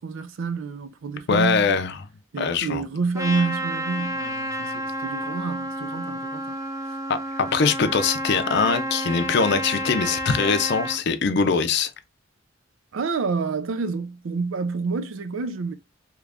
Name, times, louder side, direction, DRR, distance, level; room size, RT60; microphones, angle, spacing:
voice 1, 0.0-1.7 2.3-6.6 6.9-7.0 12.9-15.7, right 4 dB, 85° right, 0.5 m, -28 dB
voice 2, 1.3-1.9 2.4-2.8 7.1-11.9, left 5 dB, 60° left, 0.5 m, -22 dB
Trumpet, 3.1-11.0, equal, 15° right, 0.5 m, -30 dB
3.0 x 2.4 x 3.4 m
head